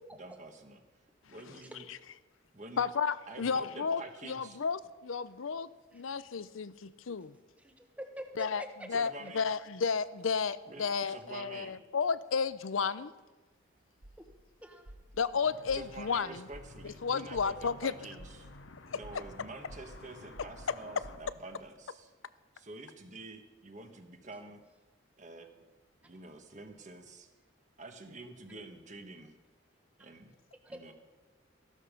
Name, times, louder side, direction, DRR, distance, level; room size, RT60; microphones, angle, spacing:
voice 1, 0.2-0.8 1.3-1.9 2.5-2.8 3.3-4.6 8.9-9.4 10.7-11.8 15.7-18.5 18.9-22.1 22.5-24.6 25.2-25.6 26.0-27.3 27.8-29.3 30.0-30.3 30.7-30.9, right 2 dB, 40° right, 5 dB, 1.4 m, -48 dB
voice 2, 2.8-7.3 8.4-13.1 15.2-16.4 16.8-17.9, left 5 dB, 90° left, 15 dB, 0.6 m, -33 dB
voice 3, 7.6-8.7 14.6-14.9 30.6-30.9, equal, 5° right, 4 dB, 1.2 m, -45 dB
sound 1, 13.5-21.6, right 1 dB, 75° right, 1.5 m, -53 dB
sound 2, 15.4-21.2, left 3 dB, 70° left, 1.0 m, -53 dB
14.5 x 12.5 x 5.2 m, 1.2 s
head